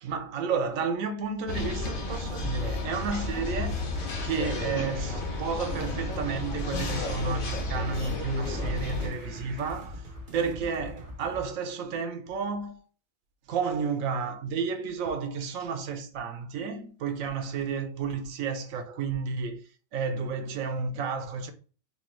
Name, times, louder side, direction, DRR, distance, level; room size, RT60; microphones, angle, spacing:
voice 1, 0.0-3.8 4.2-10.0 10.3-12.8 13.5-19.7 19.9-21.5, right 5 dB, 85° right, 1.1 m, -31 dB
sound 1, 1.5-9.1, left 2 dB, 50° left, 0.8 m, -32 dB
sound 2, 2.9-10.7, left 2 dB, 70° right, 1.4 m, -46 dB
sound 3, 5.9-11.4, left 1 dB, 40° right, 1.3 m, -43 dB
4.4 x 2.2 x 3.0 m
omnidirectional pair, 1.4 m